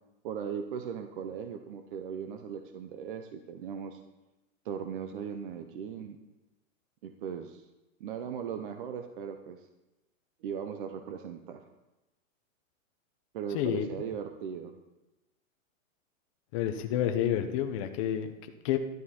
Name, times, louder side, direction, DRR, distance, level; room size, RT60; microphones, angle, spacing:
voice 1, 0.2-4.0 4.6-6.2 7.0-7.7 8.0-9.7 10.4-11.6 13.3-14.8, right 7 dB, 40° right, 7 dB, 0.7 m, -38 dB
voice 2, 16.5-18.8, left 10 dB, 25° left, 7 dB, 0.6 m, -29 dB
12.0 x 11.0 x 4.3 m, 1.0 s
supercardioid pair, 165°, 41 cm